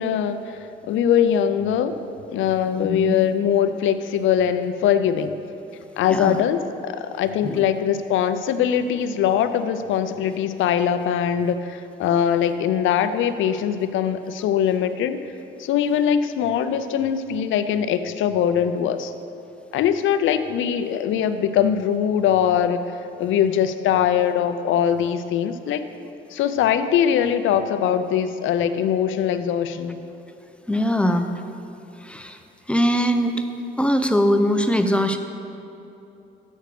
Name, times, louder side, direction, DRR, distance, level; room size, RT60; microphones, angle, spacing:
voice 1, 0.0-1.9 2.3-5.3 6.0-15.2 15.6-19.1 19.7-22.9 23.2-25.9 26.3-30.0, left 9 dB, 80° left, 10 dB, 0.5 m, -22 dB
voice 2, 2.8-3.3 6.1-6.4 7.4-7.6 30.7-31.4 32.0-32.4 32.7-33.4 33.8-35.2, equal, 5° left, 7 dB, 0.6 m, -21 dB
6.6 x 6.3 x 6.7 m, 2.9 s
cardioid pair, 90°, 20 cm